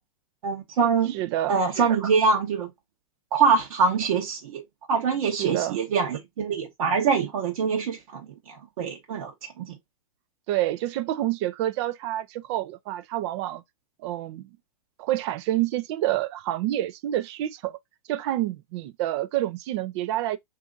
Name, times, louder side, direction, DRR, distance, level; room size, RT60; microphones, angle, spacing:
voice 1, 0.4-1.1 1.5-2.7 3.3-4.6 4.9-8.2 8.5-9.3 9.6-9.8, right 5 dB, 65° right, 0.9 m, -24 dB
voice 2, 1.1-1.6 5.3-5.8 10.5-13.6 14.0-14.5 15.0-17.8 18.1-20.4, right 14 dB, 50° right, 0.5 m, -28 dB
2.7 x 2.6 x 3.6 m
hypercardioid pair, 110°, 19 cm